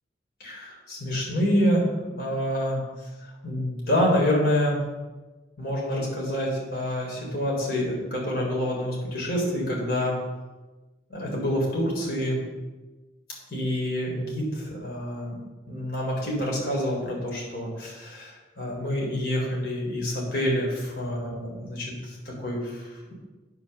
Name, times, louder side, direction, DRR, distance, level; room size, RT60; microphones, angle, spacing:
voice 1, 0.4-2.8 3.4-4.8 5.6-10.2 11.1-12.4 13.5-15.4 15.7-23.1, equal, 55° left, -3 dB, 4.1 m, -27 dB
9.2 x 6.1 x 7.0 m, 1.2 s
head